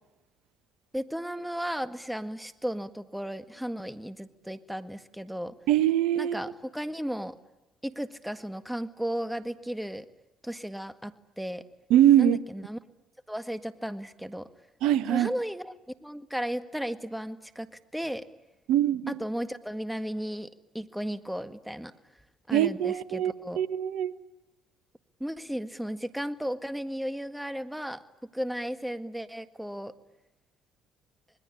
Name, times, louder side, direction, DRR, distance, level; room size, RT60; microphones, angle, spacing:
voice 1, 0.9-5.6 6.2-7.4 7.8-10.1 10.4-11.6 12.2-12.8 13.3-14.5 15.1-15.7 16.0-18.3 19.1-21.9 22.5-23.6 25.2-28.0 28.3-29.9, equal, 5° right, 1.8 m, -35 dB
voice 2, 5.7-6.4 11.9-12.4 14.8-15.3 18.7-19.2 22.5-24.1, right 11 dB, 75° right, 1.1 m, -23 dB
26.5 x 21.0 x 9.9 m
hypercardioid pair, 60°, 0 cm